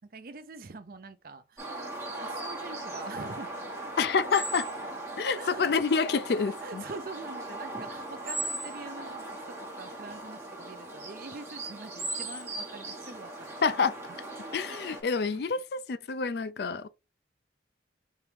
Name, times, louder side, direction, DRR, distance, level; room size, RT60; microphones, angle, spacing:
voice 1, 0.1-1.7 2.2-3.5 5.3-5.6 6.6-13.5 15.3-15.4, right 3 dB, 50° right, 0.5 m, -44 dB
sound 1, 1.6-15.0, right 2 dB, 15° right, 1.5 m, -38 dB
voice 2, 4.0-4.7 5.2-6.8 13.6-14.0 14.5-16.9, left 5 dB, 60° left, 0.4 m, -28 dB
4.6 x 2.9 x 3.4 m
head